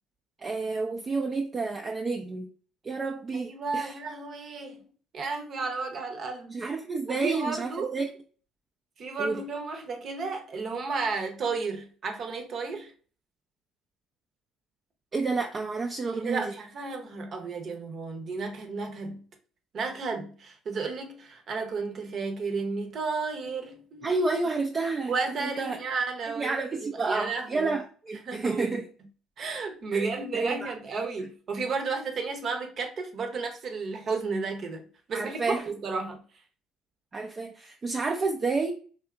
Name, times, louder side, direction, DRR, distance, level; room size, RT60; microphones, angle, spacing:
voice 1, 0.4-2.5 2.8-4.0 6.5-8.1 9.2-9.4 15.1-16.6 24.0-25.8 26.2-28.9 29.9-30.7 31.2-31.3 35.1-35.7 37.1-38.7, right 3 dB, 35° right, 0.4 m, -30 dB
voice 2, 3.3-4.8 5.1-6.5 7.1-8.0 9.0-12.9 16.1-19.2 19.7-24.1 25.1-26.5 27.0-27.7 28.3-28.8 29.4-36.2, right 4 dB, 50° right, 0.8 m, -33 dB
3.4 x 2.7 x 2.4 m
hypercardioid pair, 60°, 0 cm